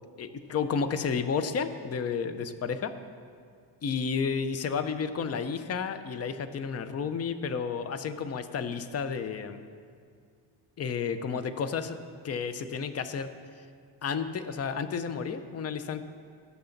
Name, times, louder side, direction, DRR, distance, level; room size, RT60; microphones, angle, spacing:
voice 1, 0.2-2.9 3.8-9.6 10.8-12.0 12.2-13.3 14.0-16.0, left 6 dB, 30° left, 11 dB, 0.6 m, -31 dB
20.0 x 6.9 x 4.0 m, 2.2 s
cardioid pair, 130°, 48 cm